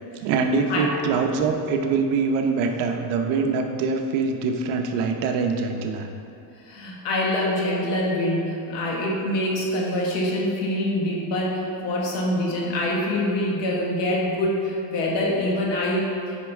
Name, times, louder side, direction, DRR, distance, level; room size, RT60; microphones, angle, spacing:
voice 1, 0.2-6.1, right 4 dB, 90° right, 4 dB, 0.9 m, -24 dB
voice 2, 6.6-16.4, left 1 dB, 65° left, -2 dB, 1.8 m, -25 dB
9.7 x 5.4 x 3.5 m, 2.6 s
cardioid pair, 140°, 47 cm